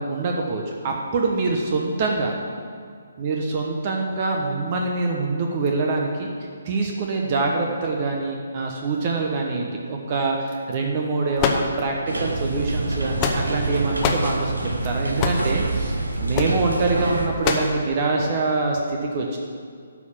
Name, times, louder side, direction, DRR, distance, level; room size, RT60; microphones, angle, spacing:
voice 1, 0.0-2.3 3.2-6.3 6.6-15.9 16.2-19.4, right 3 dB, 40° right, 0 dB, 1.1 m, -25 dB
sound 1, 11.4-12.2 12.9-13.6 14.0-14.3 15.2-15.5 16.3-16.6 17.4-17.8, left 5 dB, 25° left, 0.9 m, -24 dB
sound 2, 12.1-17.3, right 2 dB, 90° right, 1.3 m, -26 dB
12.5 x 4.8 x 7.3 m, 2.2 s
figure-of-eight pair, 145°, 0 cm